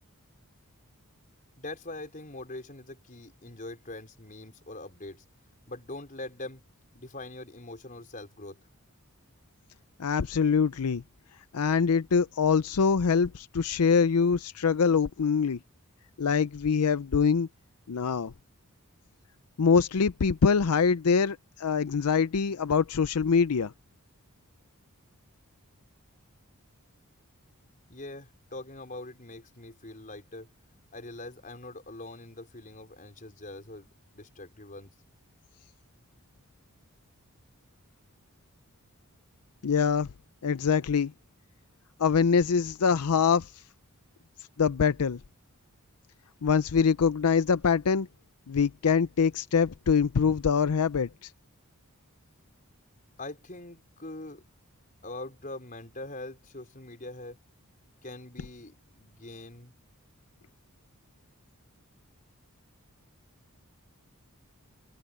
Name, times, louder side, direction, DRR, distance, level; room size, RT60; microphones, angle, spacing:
voice 1, 1.6-5.2 5.7-6.6 6.9-8.6 27.9-30.5 30.9-33.9 34.1-34.9 53.2-54.4 55.0-57.4 58.0-59.7, left 2 dB, 35° left, 4.6 m, -43 dB
voice 2, 10.0-11.0 11.5-15.6 16.2-17.5 17.9-18.3 19.6-23.7 39.6-40.1 40.4-41.1 42.0-43.5 44.6-45.2 46.4-48.1 48.5-51.3, left 6 dB, 85° left, 0.5 m, -24 dB
head